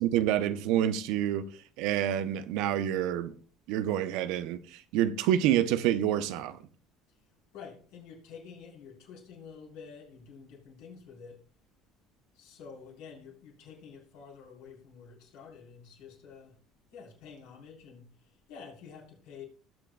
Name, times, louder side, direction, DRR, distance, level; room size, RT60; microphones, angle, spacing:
voice 1, 0.0-1.5 1.8-3.3 3.7-6.6, right 11 dB, 70° right, 0.7 m, -27 dB
voice 2, 7.5-11.4 12.3-16.6 16.9-19.4, left 6 dB, 75° left, 3.9 m, -49 dB
20.0 x 6.8 x 2.3 m
hypercardioid pair, 70°, 0 cm